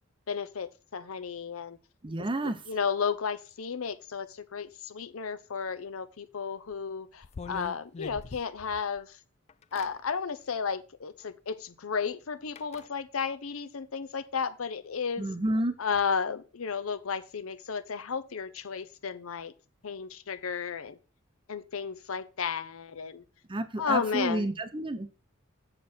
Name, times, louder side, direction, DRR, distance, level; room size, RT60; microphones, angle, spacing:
voice 1, 0.3-1.8 2.7-9.1 9.7-15.2 15.8-19.5 19.8-21.0 21.5-23.2 23.8-24.4, left 6 dB, 80° left, 0.7 m, -33 dB
voice 2, 2.0-2.6 15.2-15.8 23.5-25.1, right 1 dB, 25° right, 0.7 m, -30 dB
sound 1, 6.7-6.8 7.2-9.0 9.5-9.9 11.2-11.3 12.6-12.9, left 4 dB, 30° left, 0.3 m, -43 dB
7.4 x 6.5 x 4.3 m
head